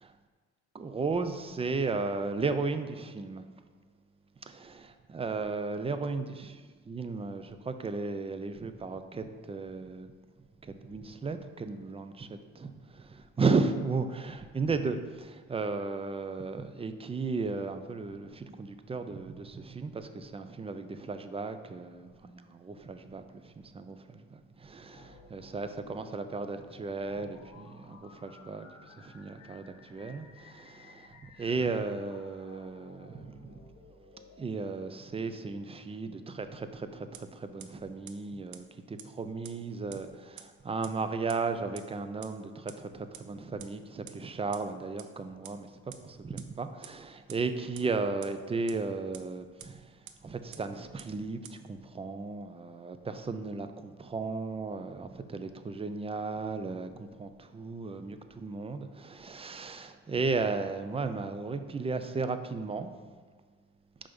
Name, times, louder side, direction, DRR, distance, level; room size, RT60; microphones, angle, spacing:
voice 1, 0.7-3.4 4.5-6.5 6.9-10.1 10.6-12.3 12.6-28.7 28.9-33.6 34.4-45.7 46.0-49.9 50.2-62.9, right 4 dB, 20° right, 9 dB, 0.4 m, -35 dB
sound 1, 24.9-34.4, left 4 dB, 85° left, 0.8 m, -56 dB
sound 2, 37.1-37.2 37.6-37.7 38.1-38.2 38.5-38.6 39.0-39.1 39.4-39.5 39.9-40.0 40.4-40.5 40.8-40.9 41.3-41.4 41.7-41.8 42.2-42.3 42.7-42.8 43.1-43.2 43.6-43.7 44.1-44.2 44.5-44.6 45.0-45.1 45.4-45.5 45.9-46.0 46.4-46.5 46.8-46.9 47.3-47.4 47.7-47.8 48.2-48.3 48.7-48.8 49.1-49.2 49.6-49.7 50.1-50.2 50.5-50.6 51.0-51.1 51.4-51.5, right 12 dB, 70° right, 0.5 m, -45 dB
5.2 x 3.4 x 5.2 m, 1.5 s
cardioid pair, 90°, 30 cm